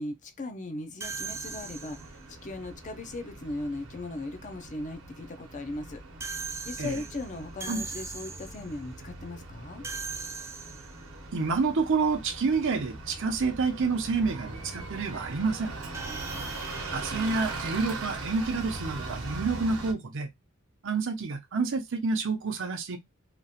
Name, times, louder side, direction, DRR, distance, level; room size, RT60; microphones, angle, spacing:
voice 1, 0.0-6.0 6.3-9.8 15.9-16.5, left 2 dB, 35° left, 0.5 m, -38 dB
sound 1, 1.0-2.3 6.2-8.7 9.8-11.1 15.9-18.5, right 4 dB, 15° right, 0.4 m, -40 dB
Bus, 1.1-19.9, right 3 dB, 85° right, 0.9 m, -41 dB
voice 2, 11.3-15.7 16.9-20.3 20.8-23.0, right 4 dB, 65° right, 0.6 m, -28 dB
2.9 x 2.4 x 2.7 m
head